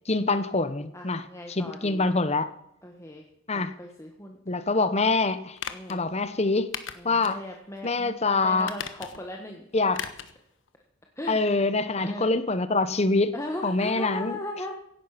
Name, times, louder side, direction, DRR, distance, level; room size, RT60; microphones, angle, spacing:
voice 1, 0.1-2.5 3.5-3.7 4.5-5.6 5.9-6.7 7.0-7.4 7.8-8.7 9.7-10.0 11.3-13.3 13.6-14.4, left 3 dB, 35° left, 12 dB, 1.0 m, -25 dB
voice 2, 0.9-2.1 2.8-3.2 3.5-4.4 5.7-6.0 6.9-9.7 11.2-11.5 12.0-12.4 13.3-14.7, left 1 dB, 15° left, 1 dB, 1.4 m, -38 dB
sound 1, 5.6-6.0 6.7-7.4 7.8-7.9 8.6-9.3 9.9-10.4 10.7-10.8, left 7 dB, 70° left, 1.3 m, -37 dB
17.0 x 11.0 x 5.9 m, 0.77 s
head